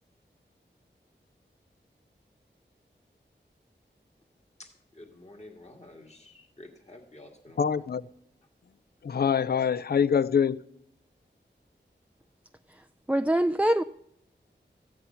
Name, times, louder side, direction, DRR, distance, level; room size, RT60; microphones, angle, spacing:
voice 1, 4.6-7.9, left 1 dB, 35° left, 1.9 m, -50 dB
voice 2, 7.6-8.0 9.0-10.6, left 7 dB, 55° left, 0.4 m, -24 dB
voice 3, 13.1-13.8, right 1 dB, 5° right, 0.4 m, -23 dB
14.0 x 9.7 x 5.6 m
cardioid pair, 40°, 19 cm